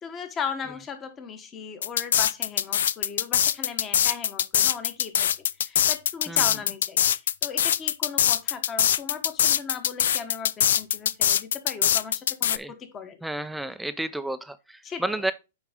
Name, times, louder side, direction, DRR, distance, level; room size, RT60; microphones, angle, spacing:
voice 1, 0.0-5.3 5.6-13.2 14.8-15.2, left 6 dB, 25° left, 1.2 m, -37 dB
sound 1, 1.8-12.6, left 9 dB, 75° left, 0.3 m, -22 dB
voice 2, 13.2-15.3, right 1 dB, 5° right, 0.4 m, -31 dB
9.3 x 4.0 x 3.6 m
hypercardioid pair, 135°, 0 cm